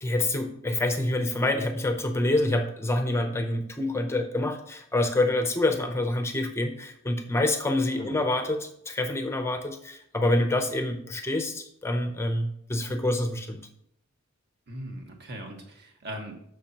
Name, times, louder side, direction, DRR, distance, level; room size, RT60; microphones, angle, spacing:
voice 1, 0.0-13.6, left 2 dB, 15° left, 6 dB, 0.6 m, -27 dB
voice 2, 14.7-16.3, right 1 dB, 55° right, 2 dB, 1.6 m, -39 dB
9.9 x 6.6 x 2.9 m, 0.72 s
head